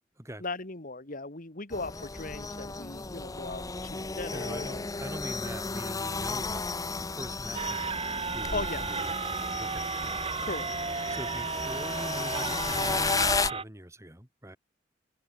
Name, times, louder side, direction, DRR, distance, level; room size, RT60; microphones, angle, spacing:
voice 1, 0.4-4.9 8.5-8.9 10.4-11.1, left 3 dB, 50° left, 2.3 m, -38 dB
sound 1, 1.7-13.5, left 4 dB, 20° left, 0.7 m, -34 dB
voice 2, 4.3-6.7 7.0-7.9 8.3-10.3 11.1-14.6, right 1 dB, 15° right, 4.3 m, -43 dB
sound 2, 7.5-13.6, right 4 dB, 30° right, 4.0 m, -33 dB
head